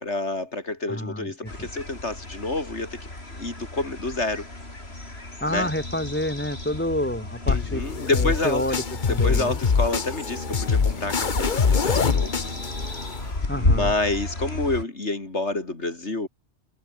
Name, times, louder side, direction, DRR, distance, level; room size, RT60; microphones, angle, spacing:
voice 1, 0.0-3.1 3.4-4.4 5.5-5.7 7.5-8.6 9.1-12.4 13.1-16.3, left 2 dB, 90° left, 4.3 m, -28 dB
voice 2, 0.9-1.7 5.4-9.6 13.5-13.9, left 1 dB, 10° left, 5.2 m, -29 dB
sound 1, 1.5-14.8, left 2 dB, 65° left, 5.4 m, -32 dB
sound 2, 7.5-13.5, left 5 dB, 45° left, 1.2 m, -24 dB
omnidirectional pair, 1.1 m